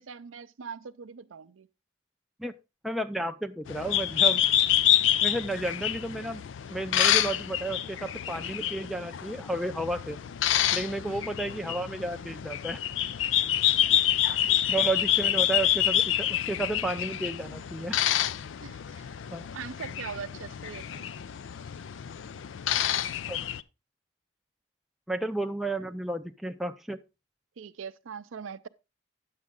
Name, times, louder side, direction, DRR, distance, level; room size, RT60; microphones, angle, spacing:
voice 1, 0.0-1.7 11.1-11.3 13.6-14.0 14.5-14.6 18.6-19.1 19.5-21.1 27.6-28.7, right 6 dB, 85° right, 0.5 m, -42 dB
voice 2, 2.8-4.5 5.2-10.2 10.7-12.8 14.7-18.0 19.3-19.5 23.3-23.4 25.1-27.0, right 2 dB, ahead, 0.4 m, -32 dB
sound 1, 3.7-23.6, left 11 dB, 75° left, 0.4 m, -27 dB
9.7 x 7.3 x 3.7 m
head